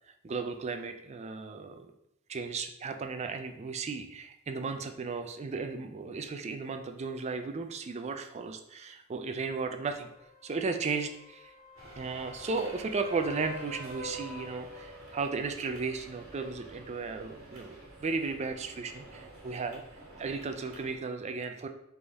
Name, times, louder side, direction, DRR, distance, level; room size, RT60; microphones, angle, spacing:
voice 1, 0.2-1.9 2.3-10.1 10.4-11.5 12.0-19.8 20.2-21.7, right 4 dB, 30° right, 7 dB, 0.4 m, -35 dB
sound 1, 9.7-15.4 19.5-19.6, left 2 dB, 40° left, 1.2 m, -47 dB
sound 2, 11.8-21.0, right 2 dB, 80° right, 1.3 m, -50 dB
3.5 x 3.5 x 4.0 m, 0.80 s
head